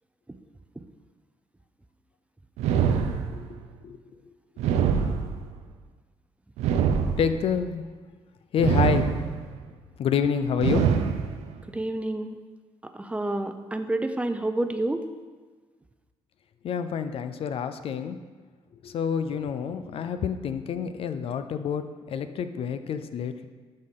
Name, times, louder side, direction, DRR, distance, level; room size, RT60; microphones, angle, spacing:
sound 1, 2.6-3.6 4.6-5.7 6.6-7.6 8.6-9.6 10.6-11.6, right 7 dB, 85° right, 0.5 m, -25 dB
voice 1, 7.2-7.8 8.5-9.0 10.0-10.9 16.6-18.2 18.8-23.4, left 7 dB, 60° left, 10 dB, 0.5 m, -28 dB
voice 2, 11.7-12.3 12.9-15.0, right 2 dB, 10° right, 8 dB, 0.5 m, -28 dB
11.5 x 4.2 x 3.7 m, 1.4 s
cardioid pair, 75°, 11 cm